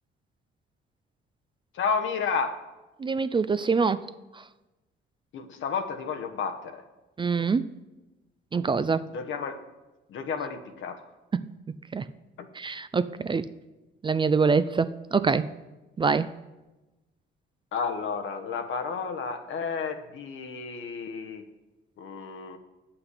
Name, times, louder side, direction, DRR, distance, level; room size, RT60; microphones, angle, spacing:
voice 1, 1.7-2.7 5.3-6.8 9.1-9.6 10.1-11.0 12.4-12.5 17.7-21.5 22.0-22.6, left 5 dB, 70° left, 7 dB, 1.1 m, -31 dB
voice 2, 3.0-4.0 4.4-4.5 7.2-7.7 8.5-9.0 11.3-11.4 11.9-12.0 12.5-13.5 14.0-15.5 16.0-16.3, right 5 dB, 25° right, 14 dB, 0.3 m, -25 dB
9.6 x 5.9 x 8.2 m, 1.1 s
cardioid pair, 105°, 21 cm